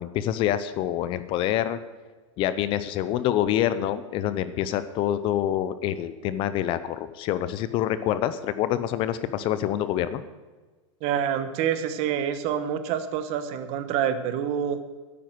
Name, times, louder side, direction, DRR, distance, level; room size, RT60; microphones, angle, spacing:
voice 1, 0.0-1.8 2.4-10.2, left 11 dB, 35° left, 13 dB, 0.6 m, -26 dB
voice 2, 11.0-14.8, right 9 dB, 40° right, 11 dB, 1.2 m, -27 dB
10.5 x 8.9 x 7.9 m, 1.3 s
hypercardioid pair, 135°, 16 cm